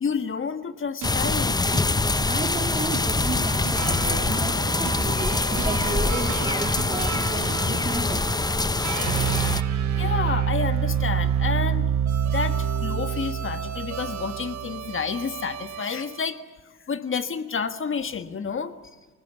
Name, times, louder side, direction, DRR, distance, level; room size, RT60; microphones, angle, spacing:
voice 1, 0.0-1.6 5.8-5.9 7.6-7.7 9.1-9.2 10.0-11.9 12.3-16.4 16.9-18.7, left 6 dB, 40° left, 10 dB, 1.6 m, -30 dB
sound 1, 1.0-9.6, left 3 dB, 15° left, 0.8 m, -24 dB
sound 2, 1.0-2.6 2.9-4.6 4.9-6.5 6.8-8.4, right 11 dB, 85° right, 1.8 m, -39 dB
voice 2, 2.2-8.4 9.1-9.6, right 3 dB, 20° right, 6 dB, 2.7 m, -34 dB
sound 3, 3.8-16.3, right 8 dB, 65° right, 2.8 m, -28 dB
27.5 x 19.0 x 8.3 m, 1.3 s
cardioid pair, 90°, 30 cm